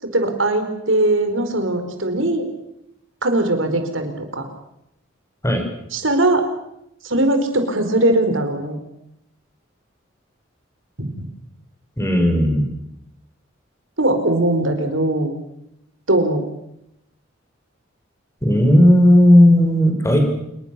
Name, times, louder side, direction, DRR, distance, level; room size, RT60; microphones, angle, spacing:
voice 1, 0.0-2.5 3.2-4.5 5.9-6.4 7.0-8.8 11.0-11.3 14.0-15.4 16.1-16.4, right 1 dB, 85° right, 7 dB, 4.6 m, -20 dB
voice 2, 12.0-12.7 18.4-20.3, left 1 dB, 15° left, 4 dB, 6.1 m, -13 dB
27.5 x 22.5 x 6.9 m, 0.81 s
head